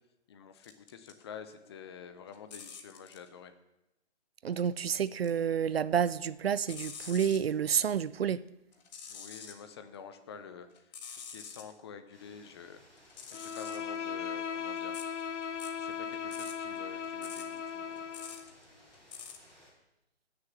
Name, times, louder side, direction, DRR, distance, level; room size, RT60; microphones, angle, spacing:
voice 1, 0.3-3.5 9.1-15.0 15.8-18.5, left 7 dB, 20° left, 0.7 m, -49 dB
sound 1, 0.6-1.2 1.6-3.3 4.5-5.4 5.8-7.5 8.7-9.6 10.1-11.7 13.0-19.5, left 6 dB, 40° left, 1.6 m, -48 dB
voice 2, 4.4-8.4, right 8 dB, 60° right, 0.5 m, -29 dB
sound 2, 12.1-19.7, equal, ahead, 4.5 m, -60 dB
Bowed string instrument, 13.3-18.5, left 7 dB, 85° left, 0.7 m, -38 dB
16.0 x 6.9 x 7.2 m
figure-of-eight pair, 145°, 35 cm